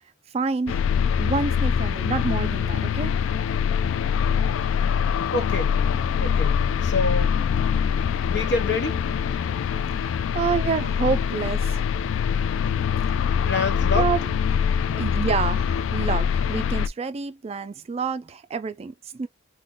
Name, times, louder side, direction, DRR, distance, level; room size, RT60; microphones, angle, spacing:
voice 1, 0.3-0.9 1.2-3.1 10.0-11.9 13.9-14.2 14.9-19.3, right 5 dB, 30° right, 0.3 m, -28 dB
sound 1, 0.7-16.9, left 7 dB, 80° left, 0.3 m, -24 dB
voice 2, 5.3-5.8 6.2-6.6 6.8-7.3 8.3-9.1 13.5-14.1, left 3 dB, 60° left, 1.1 m, -27 dB
Marimba xylophone, 5.3-10.9, equal, 25° left, 1.2 m, -45 dB
3.7 x 2.2 x 3.7 m
head